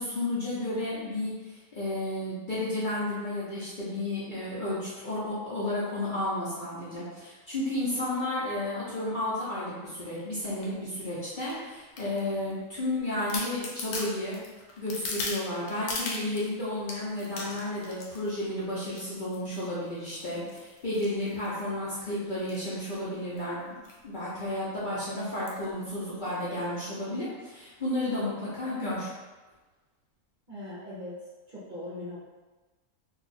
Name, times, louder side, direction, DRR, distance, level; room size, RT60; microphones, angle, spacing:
voice 1, 0.0-14.4 14.8-23.6 24.0-29.1, left 1 dB, 40° left, -9 dB, 0.8 m, -32 dB
sound 1, 10.4-10.7 11.5-12.5 12.9-13.0 13.3-16.5 16.9-18.3 18.8-19.0 19.3-19.7 20.1-21.9 22.4-22.6 22.9-23.0 23.2-23.4 23.8-24.0 24.4-24.5 25.5-25.7 26.3-26.4, left 3 dB, 85° left, 1.1 m, -38 dB
voice 2, 30.5-31.2 31.5-32.2, left 1 dB, 45° right, -9 dB, 0.7 m, -40 dB
2.7 x 2.4 x 4.0 m, 1.2 s
omnidirectional pair, 1.5 m